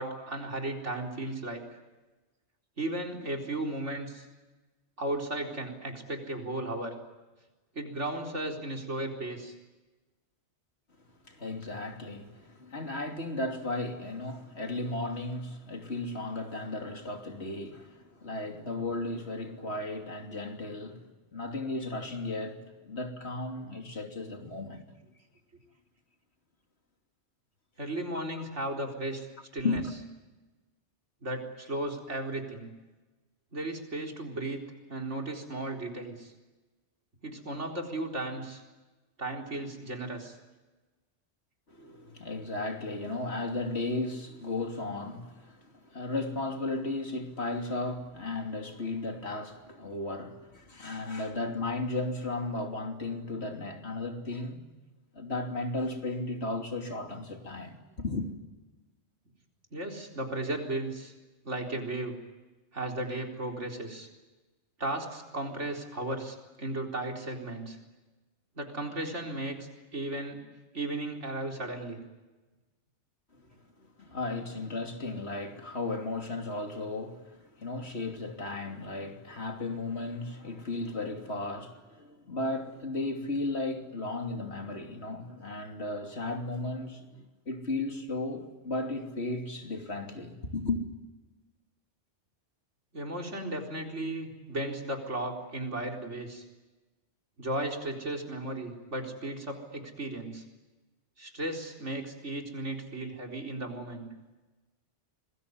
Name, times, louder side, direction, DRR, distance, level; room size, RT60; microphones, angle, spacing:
voice 1, 0.0-1.6 2.8-4.3 5.0-7.0 7.7-9.5 27.8-29.3 29.5-29.8 31.2-32.7 33.5-34.6 34.9-36.3 37.2-38.6 39.2-40.4 59.7-61.1 61.4-62.2 62.7-64.1 64.8-67.8 68.6-70.4 70.7-72.0 92.9-96.4 97.4-100.4 101.2-104.1, right 1 dB, 85° right, 4.4 m, -35 dB
voice 2, 11.2-24.9 29.6-29.9 41.7-54.7 55.1-58.3 73.3-73.4 73.8-90.8, left 2 dB, 65° left, 3.3 m, -35 dB
26.0 x 21.0 x 9.8 m
omnidirectional pair, 1.2 m